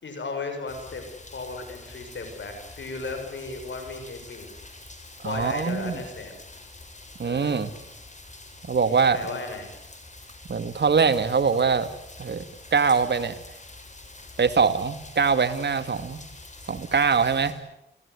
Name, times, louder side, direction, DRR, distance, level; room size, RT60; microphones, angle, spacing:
voice 1, 0.0-1.0 1.3-4.5 5.2-6.3 7.2-7.6 8.9-9.7, left 3 dB, 75° left, 6 dB, 6.9 m, -35 dB
sound 1, 0.7-17.5, left 2 dB, 40° left, 6.7 m, -46 dB
voice 2, 5.2-6.0 7.2-7.7 8.7-9.2 10.5-11.9 12.2-12.4 12.7-13.3 14.4-16.2 16.7-17.5, right 5 dB, 65° right, 10 dB, 2.1 m, -23 dB
28.0 x 16.5 x 9.8 m, 0.84 s
cardioid pair, 55°, 19 cm